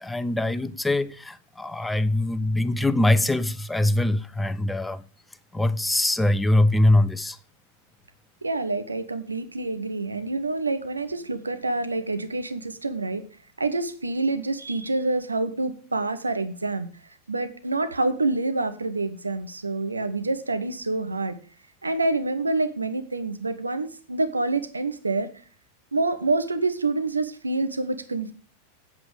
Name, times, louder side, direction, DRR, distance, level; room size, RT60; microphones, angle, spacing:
voice 1, 0.0-5.0 5.5-7.4, left 1 dB, 5° left, 0.6 m, -23 dB
voice 2, 8.4-13.2 13.6-16.9 17.3-21.4 21.8-25.3 25.9-28.3, right 3 dB, 80° right, 0.9 m, -27 dB
8.2 x 7.9 x 5.0 m
figure-of-eight pair, 90°, 0 cm